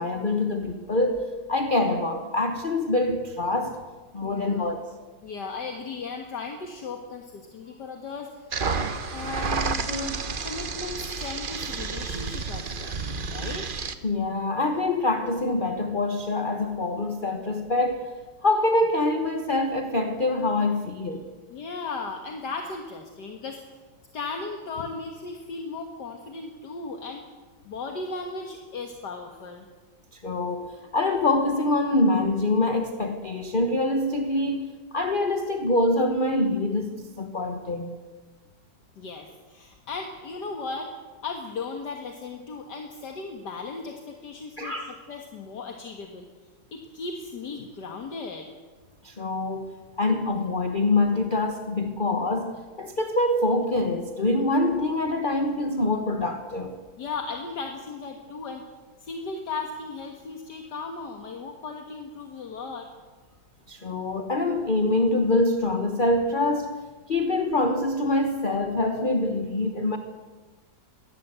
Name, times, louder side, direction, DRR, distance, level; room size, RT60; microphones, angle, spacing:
voice 1, 0.0-3.8 4.1-4.9 9.9-10.1 14.0-18.1 18.4-21.3 30.1-37.9 44.6-44.9 49.0-56.8 63.7-66.8 67.1-70.0, left 2 dB, 30° left, 6 dB, 1.3 m, -25 dB
voice 2, 4.2-4.7 5.2-8.5 9.1-13.0 13.3-13.7 21.5-23.6 24.1-27.3 27.7-29.7 39.0-40.9 41.2-46.3 46.7-48.5 57.0-58.6 59.0-62.9, left 4 dB, 65° left, 4 dB, 2.2 m, -36 dB
sound 1, 8.5-13.9, right 4 dB, 35° right, 0.9 m, -30 dB
23.0 x 17.5 x 8.1 m, 1.4 s
omnidirectional pair, 2.0 m